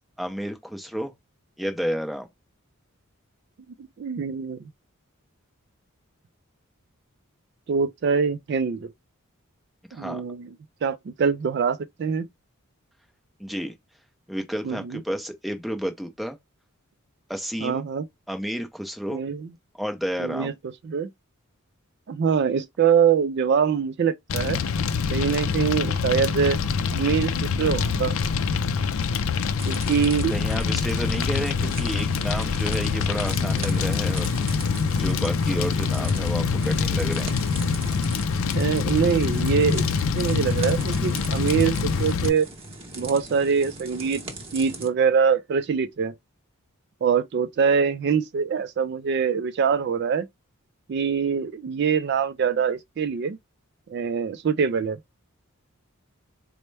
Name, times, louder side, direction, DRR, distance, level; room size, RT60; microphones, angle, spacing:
voice 1, 0.2-1.1 1.6-2.3 9.9-10.2 13.4-13.8 14.3-16.4 17.3-17.8 18.3-19.2 19.7-20.5 30.3-34.4 34.9-37.3, equal, ahead, 0.6 m, -31 dB
voice 2, 4.0-4.6 7.7-8.9 9.9-10.5 10.8-12.3 14.6-15.0 17.6-18.0 19.1-19.5 20.2-20.5 20.8-21.1 22.1-24.6 25.1-26.6 26.9-28.2 29.7-30.3 38.5-39.8 40.1-42.5 42.9-44.2 44.5-46.1 47.0-50.3 50.9-53.4 53.9-55.0, right 6 dB, 50° right, 0.3 m, -24 dB
Fire, 24.3-42.3, left 5 dB, 70° left, 0.4 m, -25 dB
sound 1, 29.6-44.9, right 2 dB, 25° right, 0.8 m, -40 dB
4.2 x 2.1 x 3.2 m
head